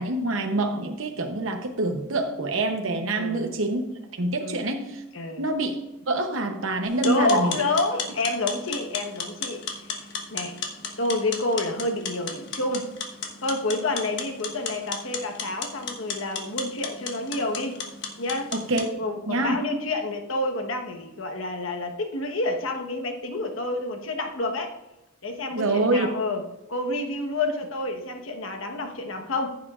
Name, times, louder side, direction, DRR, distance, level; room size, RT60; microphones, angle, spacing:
voice 1, 0.0-3.8 4.2-5.0 5.4-5.8 6.1-7.5 18.5-18.9 19.3-19.6 25.5-26.1, right 2 dB, 80° right, 4 dB, 0.8 m, -26 dB
voice 2, 3.2-3.5 4.4-4.6 5.1-5.4 7.0-10.0 10.3-10.6 11.0-12.9 13.4-17.8 18.2-18.5 19.0-24.7 25.2-29.6, left 2 dB, 85° left, 4 dB, 1.2 m, -29 dB
sound 1, 6.9-18.9, left 5 dB, 60° left, 1.3 m, -35 dB
14.5 x 7.3 x 2.4 m, 0.95 s
head